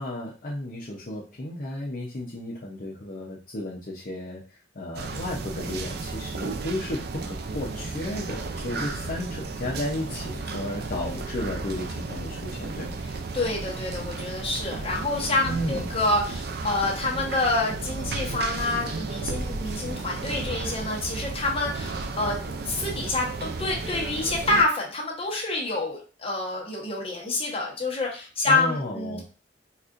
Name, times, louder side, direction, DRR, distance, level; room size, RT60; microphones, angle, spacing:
voice 1, 0.0-4.4 4.7-13.0 15.4-15.9 28.4-29.2, left 1 dB, 50° left, -5 dB, 0.7 m, -33 dB
sound 1, 4.9-24.6, right 3 dB, 60° right, 0.4 m, -33 dB
voice 2, 13.3-22.4 22.6-29.2, left 2 dB, 30° left, -2 dB, 1.1 m, -27 dB
4.2 x 2.5 x 2.5 m, 0.37 s
head